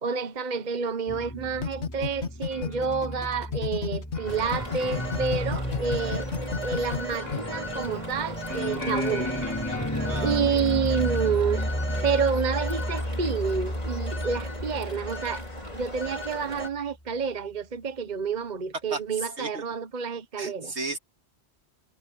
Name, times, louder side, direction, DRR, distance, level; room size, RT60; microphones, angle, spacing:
voice 1, 0.0-6.3 6.6-9.5 10.2-11.6 12.0-15.4 15.7-20.7, right 6 dB, 40° right, 1.2 m, -29 dB
sound 1, 1.1-16.4, equal, 15° left, 4.3 m, -33 dB
sound 2, 1.6-4.2 4.5-7.4, left 7 dB, 80° left, 1.4 m, -30 dB
Telephone, 4.3-16.7, left 1 dB, 35° left, 4.6 m, -36 dB
voice 2, 10.0-10.4 18.9-19.0 19.4-19.6 20.4-21.0, right 3 dB, 75° right, 2.9 m, -34 dB
omnidirectional pair, 1.1 m